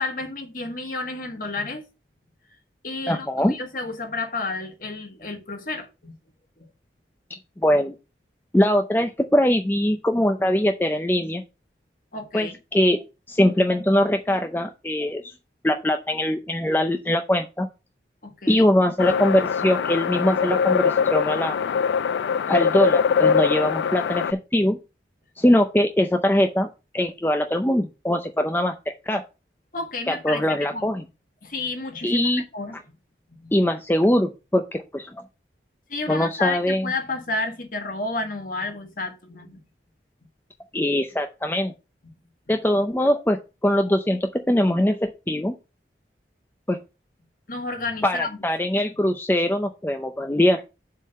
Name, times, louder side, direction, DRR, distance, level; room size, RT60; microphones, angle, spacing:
voice 1, 0.0-1.8 2.8-6.1 6.6-6.7 12.1-12.6 18.2-18.6 29.7-30.9 31.4-32.8 33.4-33.5 35.9-39.6 47.5-48.4 49.1-49.2, left 3 dB, 50° left, 1.7 m, -31 dB
voice 2, 3.1-3.5 7.6-7.9 8.5-11.4 12.3-13.0 13.3-15.3 15.6-17.7 18.5-21.6 22.5-24.8 25.4-26.7 26.9-29.2 30.1-31.0 32.0-32.4 33.5-35.2 36.1-36.9 40.7-41.7 42.5-45.5 46.7-46.8 48.0-50.6, left 1 dB, 10° left, 0.5 m, -22 dB
sound 1, 19.0-24.3, left 6 dB, 80° left, 0.3 m, -22 dB
7.4 x 3.8 x 6.6 m
head